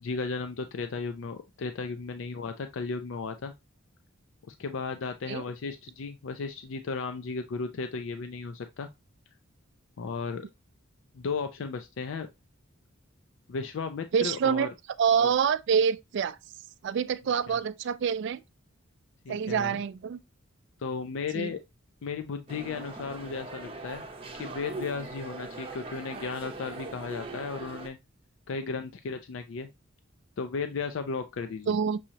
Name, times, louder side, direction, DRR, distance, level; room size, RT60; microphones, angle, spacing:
voice 1, 0.0-3.5 4.5-8.9 10.0-10.4 11.1-12.3 13.5-14.7 15.2-15.3 17.5-17.6 19.3-19.8 20.8-21.6 22.0-24.0 24.3-28.0 28.5-29.7 30.4-31.7, left 4 dB, 65° left, 0.4 m, -35 dB
voice 2, 14.1-14.7 15.0-16.4 16.8-18.4 19.3-20.2 21.3-21.5 31.7-32.0, right 7 dB, 60° right, 0.3 m, -26 dB
sound 1, 22.5-27.9, right 3 dB, 25° right, 0.8 m, -41 dB
6.2 x 2.9 x 2.8 m
head